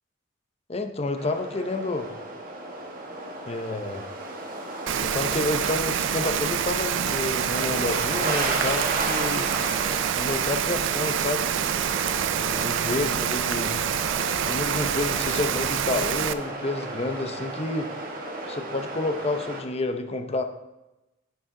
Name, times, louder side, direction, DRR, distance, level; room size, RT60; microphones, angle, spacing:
voice 1, 0.7-2.1 3.5-4.1 5.0-9.5 10.2-11.5 12.3-13.8 14.5-17.9 18.5-20.4, left 2 dB, 35° left, 7 dB, 0.7 m, -29 dB
sound 1, 1.2-19.6, right 2 dB, 50° right, 1.4 m, -34 dB
Rain, 4.9-16.3, right 9 dB, 75° right, 0.4 m, -27 dB
10.5 x 6.9 x 3.7 m, 1.0 s
head